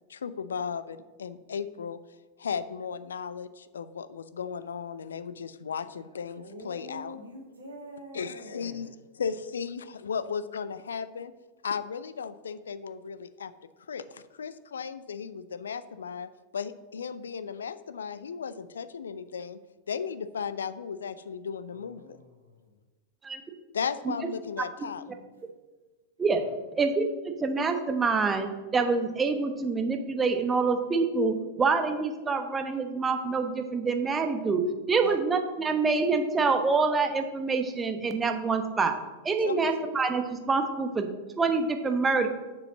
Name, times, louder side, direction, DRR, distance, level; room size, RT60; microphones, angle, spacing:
voice 1, 0.1-2.0 2.4-7.2 8.1-8.9 9.2-11.3 11.6-13.5 13.9-19.6 19.9-22.2 23.7-25.0 35.0-35.2 39.4-39.6, left 6 dB, 70° left, 13 dB, 0.4 m, -35 dB
voice 2, 6.4-8.9 21.7-22.6 26.3-26.5, equal, 70° right, 0 dB, 2.0 m, -45 dB
voice 3, 26.7-39.0 39.2-41.1 41.4-42.3, right 4 dB, 15° right, 6 dB, 1.0 m, -26 dB
6.9 x 5.2 x 7.0 m, 1.2 s
figure-of-eight pair, 90°, 0 cm